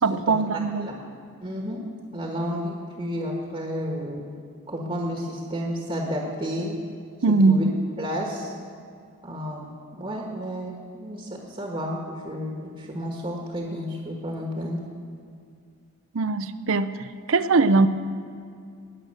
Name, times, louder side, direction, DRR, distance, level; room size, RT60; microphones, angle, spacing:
voice 1, 0.0-0.9 7.2-7.8 16.1-17.9, right 3 dB, 65° right, 13 dB, 0.6 m, -21 dB
voice 2, 1.4-1.8 2.1-4.3 4.7-6.8 7.3-7.6 8.0-8.5 9.2-9.7 10.0-14.9, equal, 25° right, 0 dB, 1.4 m, -31 dB
19.0 x 8.0 x 6.5 m, 2.3 s
head